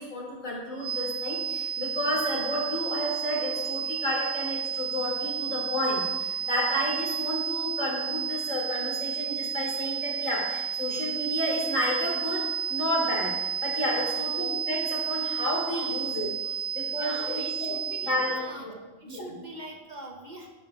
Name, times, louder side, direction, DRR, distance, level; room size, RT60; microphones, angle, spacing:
voice 1, 0.0-12.4 12.7-16.2 16.7-17.8 18.0-18.4 18.6-18.7 19.0-19.3, left 1 dB, 90° left, -4 dB, 3.5 m, -31 dB
sound 1, 0.8-18.6, right 8 dB, 60° right, 0.8 m, -32 dB
voice 2, 13.8-14.2 15.7-15.9 16.4-16.6 17.0-18.7 19.0-20.5, right 2 dB, 35° right, 1 dB, 1.2 m, -42 dB
11.5 x 9.7 x 3.1 m, 1.2 s
omnidirectional pair, 1.3 m